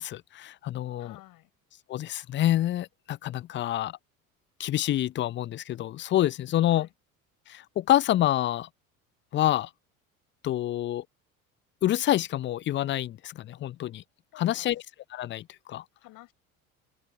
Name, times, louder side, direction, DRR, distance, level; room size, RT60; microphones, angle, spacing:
voice 1, 0.0-1.1 1.9-4.0 4.6-6.9 7.5-8.7 9.3-9.7 10.4-11.0 11.8-14.0 14.4-14.8 15.1-15.8, left 13 dB, 25° left, 0.6 m, -27 dB
voice 2, 1.0-1.5 6.7-6.9 14.3-14.8 15.9-16.3, left 17 dB, 50° left, 7.3 m, -52 dB
open air
figure-of-eight pair, 60°, 42 cm